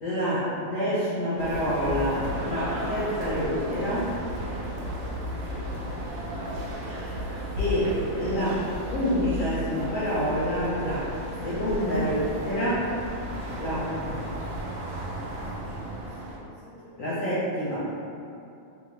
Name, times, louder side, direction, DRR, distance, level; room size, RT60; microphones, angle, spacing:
voice 1, 0.0-4.1 7.6-8.6 8.9-11.1 11.4-12.8 13.6-14.1 17.0-17.9, equal, 65° left, -10 dB, 0.8 m, -27 dB
sound 1, 1.4-16.4, equal, 85° right, 1.5 m, -34 dB
3.6 x 2.1 x 3.0 m, 2.6 s
omnidirectional pair, 2.1 m